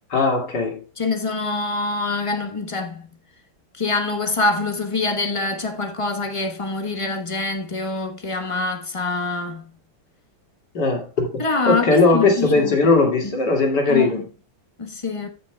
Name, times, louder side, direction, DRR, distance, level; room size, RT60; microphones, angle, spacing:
voice 1, 0.1-0.8 10.7-11.3 11.7-14.2, left 3 dB, 60° left, 2.8 m, -18 dB
voice 2, 1.0-3.1 3.8-9.7 11.4-12.8 13.2-13.4 13.9-14.2 14.8-15.3, left 3 dB, 25° left, 0.8 m, -25 dB
15.0 x 5.8 x 2.2 m
omnidirectional pair, 2.1 m